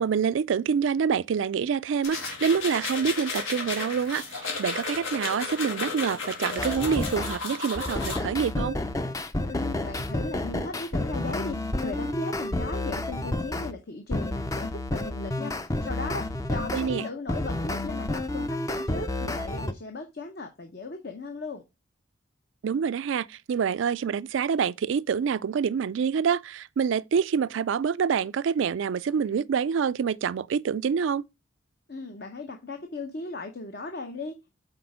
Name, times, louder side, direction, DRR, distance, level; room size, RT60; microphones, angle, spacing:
voice 1, 0.0-8.8 16.7-17.0 22.6-31.2, right 6 dB, 70° right, 0.3 m, -26 dB
sound 1, 2.0-8.2, left 4 dB, 80° left, 2.1 m, -33 dB
sound 2, 6.6-7.4 7.8-13.7 14.1-19.7, left 2 dB, 15° left, 0.4 m, -30 dB
voice 2, 9.5-21.6 31.9-34.5, left 3 dB, 50° left, 0.8 m, -37 dB
6.0 x 4.3 x 4.8 m
head